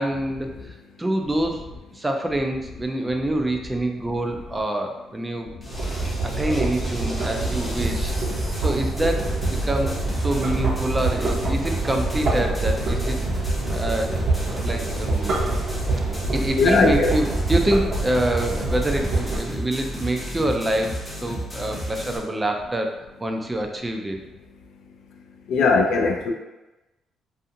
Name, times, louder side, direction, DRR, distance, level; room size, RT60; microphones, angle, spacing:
voice 1, 0.0-5.5 6.2-8.2 8.6-13.2 13.7-15.3 16.3-24.2, right 1 dB, 15° right, 3 dB, 0.4 m, -26 dB
sound 1, 5.6-22.2, equal, 15° left, 0.8 m, -33 dB
sound 2, 5.7-19.4, right 2 dB, 55° right, 0.6 m, -26 dB
voice 2, 16.6-17.1 25.5-26.3, left 4 dB, 80° left, 2 dB, 0.4 m, -19 dB
2.5 x 2.3 x 2.7 m, 1.0 s
cardioid pair, 90°, 0 cm